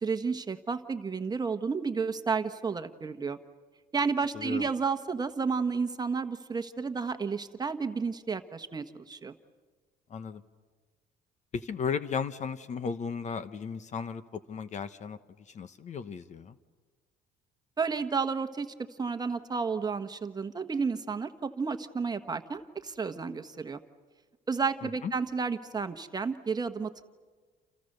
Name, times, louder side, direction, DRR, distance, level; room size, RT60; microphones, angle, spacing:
voice 1, 0.0-3.4 3.9-9.3 17.8-18.7 19.0-23.8 24.5-27.0, right 5 dB, 25° right, 8 dB, 1.3 m, -31 dB
voice 2, 4.3-4.7 10.1-10.4 11.5-15.2 15.5-16.5 24.8-25.1, left 6 dB, 45° left, 12 dB, 1.1 m, -35 dB
29.0 x 28.5 x 6.7 m, 1.4 s
cardioid pair, 110°, 17 cm